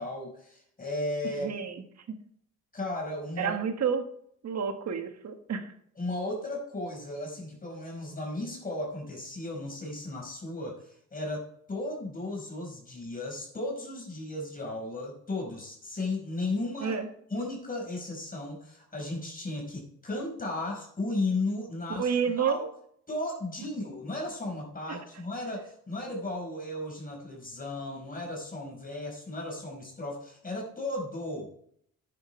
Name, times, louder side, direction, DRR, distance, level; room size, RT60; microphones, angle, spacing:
voice 1, 0.0-1.7 2.7-3.6 6.0-17.0 17.3-22.7 23.1-31.5, left 2 dB, 30° left, 0 dB, 5.3 m, -35 dB
voice 2, 1.4-1.8 2.1-2.2 3.4-4.1 4.4-5.7 16.8-17.1 22.0-22.6 24.9-25.0, right 7 dB, 60° right, 6 dB, 1.7 m, -30 dB
11.0 x 10.0 x 3.4 m, 0.66 s
cardioid pair, 90°, 30 cm